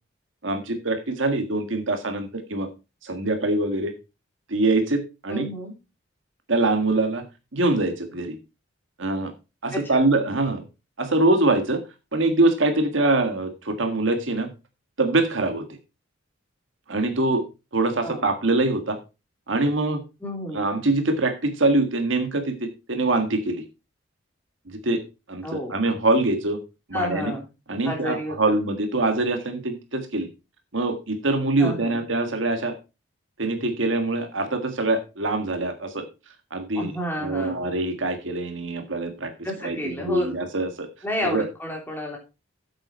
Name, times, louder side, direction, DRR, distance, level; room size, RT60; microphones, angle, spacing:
voice 1, 0.4-2.7 3.0-3.9 4.5-5.4 6.5-7.2 7.5-8.4 9.0-9.3 9.6-10.6 11.0-11.8 12.1-14.5 15.0-15.6 16.9-17.4 17.7-19.0 19.5-20.0 20.5-23.6 24.7-25.0 25.3-26.6 26.9-27.3 27.7-30.3 30.7-32.7 33.4-36.0 36.5-36.9 37.2-39.3 39.6-40.9 41.2-41.4, right 2 dB, 75° right, 6 dB, 1.7 m, -24 dB
voice 2, 5.3-5.7 9.7-10.1 18.0-18.2 20.2-20.6 25.4-25.7 26.9-27.5 27.8-28.5 31.6-32.1 36.7-37.7 39.4-40.4 41.0-42.2, left 1 dB, 10° left, 0 dB, 3.4 m, -30 dB
8.8 x 8.1 x 4.4 m, 0.28 s
head